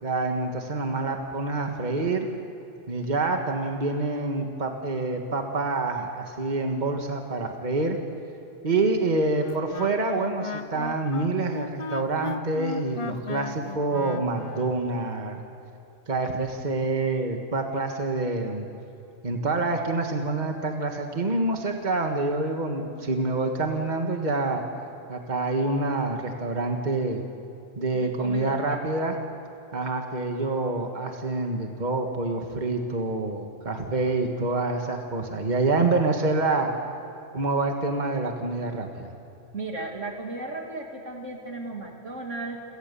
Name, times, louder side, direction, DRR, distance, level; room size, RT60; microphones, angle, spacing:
voice 1, 0.0-2.3 2.9-8.0 8.6-15.4 16.1-18.7 19.2-24.6 25.1-27.2 27.8-29.1 29.7-36.7 37.3-39.1, right 3 dB, 40° right, 3 dB, 1.8 m, -27 dB
Wind instrument woodwind instrument, 9.4-14.8, left 5 dB, 35° left, 0.5 m, -36 dB
voice 2, 27.9-28.8 39.5-42.6, right 3 dB, 80° right, 1 dB, 3.1 m, -35 dB
28.5 x 18.5 x 7.0 m, 3.0 s
omnidirectional pair, 1.2 m